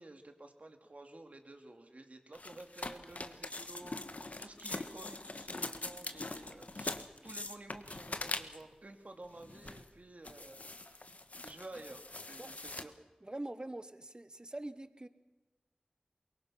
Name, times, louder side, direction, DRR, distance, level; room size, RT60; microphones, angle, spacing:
voice 1, 0.0-11.0 11.4-12.9, right 2 dB, 60° right, 5 dB, 2.6 m, -52 dB
sound 1, 2.3-8.7 9.3-9.9 10.2-12.8, left 2 dB, 60° left, 1.3 m, -43 dB
voice 2, 13.2-15.1, right 1 dB, 30° right, 12 dB, 1.2 m, -44 dB
23.5 x 22.5 x 5.8 m, 1.1 s
wide cardioid pair, 55°, 3 cm